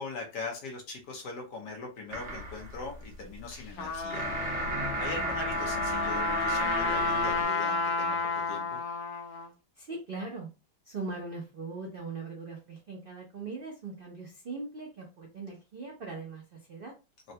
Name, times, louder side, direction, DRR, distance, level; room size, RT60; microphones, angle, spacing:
voice 1, 0.0-4.3 5.0-8.8, left 3 dB, 70° left, 0 dB, 1.5 m, -41 dB
sound 1, 2.1-7.4, right 2 dB, 50° right, 1.0 m, -35 dB
Trumpet, 3.5-9.5, left 4 dB, 85° left, 1.4 m, -31 dB
voice 2, 9.8-10.5 10.8-16.9, right 3 dB, 75° right, -1 dB, 0.5 m, -40 dB
3.8 x 2.2 x 2.7 m, 0.29 s
omnidirectional pair, 1.9 m